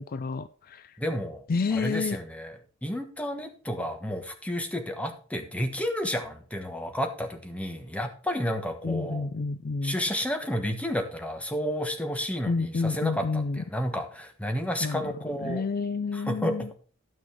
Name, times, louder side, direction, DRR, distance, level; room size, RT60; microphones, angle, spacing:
voice 1, 0.0-1.0 1.5-2.2 8.8-10.0 12.5-13.6 14.8-15.1 15.4-16.7, left 4 dB, 45° left, 13 dB, 0.4 m, -29 dB
voice 2, 1.0-1.5 1.7-2.5 2.8-9.3 9.8-15.6 16.1-16.7, equal, 5° left, 5 dB, 1.3 m, -31 dB
11.5 x 6.2 x 4.5 m, 0.39 s
head